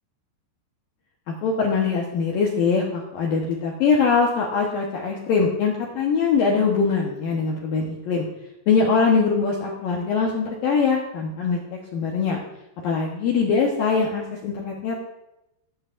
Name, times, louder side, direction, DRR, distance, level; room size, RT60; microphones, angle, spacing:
voice 1, 1.3-8.3 8.7-12.4 12.8-15.0, left 5 dB, 75° left, -2 dB, 2.1 m, -22 dB
17.5 x 9.8 x 2.6 m, 0.89 s
omnidirectional pair, 5.8 m